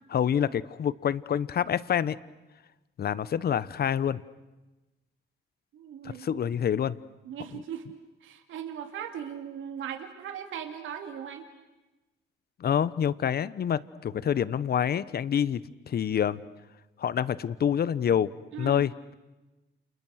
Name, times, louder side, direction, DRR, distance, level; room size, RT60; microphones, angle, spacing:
voice 1, 0.1-2.2 3.0-4.2 6.2-7.0 7.5-7.6 12.6-16.4 17.0-18.3 18.6-19.1, left 9 dB, 50° left, 17 dB, 1.0 m, -27 dB
voice 2, 5.7-6.4 7.2-7.9 8.2-11.4 18.5-18.8, right 9 dB, 80° right, 6 dB, 2.6 m, -38 dB
30.0 x 28.5 x 6.5 m, 1.1 s
cardioid pair, 90°, 20 cm